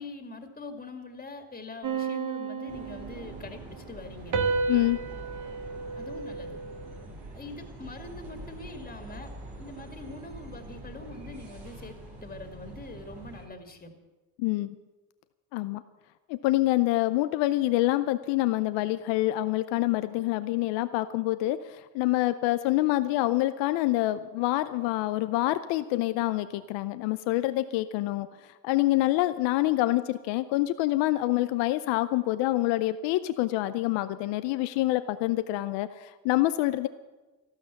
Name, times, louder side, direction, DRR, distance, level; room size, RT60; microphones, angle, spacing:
voice 1, 0.0-4.4 5.9-6.6 7.3-13.9, left 3 dB, 20° left, 5 dB, 2.1 m, -43 dB
sound 1, 1.8-3.6 4.3-7.0, right 5 dB, 45° right, 1.8 m, -32 dB
sound 2, 2.7-13.5, right 2 dB, 80° right, 5.4 m, -44 dB
voice 2, 4.7-5.0 14.4-14.8 15.5-15.8 16.3-28.3 28.6-36.9, left 17 dB, 85° left, 12 dB, 0.6 m, -26 dB
13.5 x 12.5 x 7.0 m, 1.2 s
supercardioid pair, 70°, 42 cm